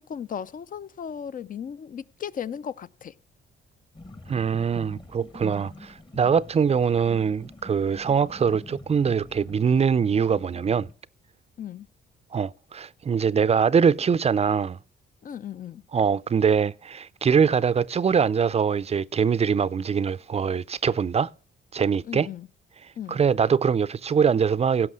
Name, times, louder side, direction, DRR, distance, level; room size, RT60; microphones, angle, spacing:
voice 1, 0.0-3.1 11.6-11.9 15.2-15.8 22.0-22.5 23.0-23.2, left 8 dB, 45° left, 0.5 m, -36 dB
sound 1, 3.9-10.9, left 2 dB, 25° left, 1.1 m, -44 dB
voice 2, 4.3-10.9 12.3-14.8 15.9-21.3 21.7-22.3 23.1-24.9, right 6 dB, 30° right, 0.5 m, -23 dB
17.0 x 5.9 x 6.2 m
cardioid pair, 90°, 20 cm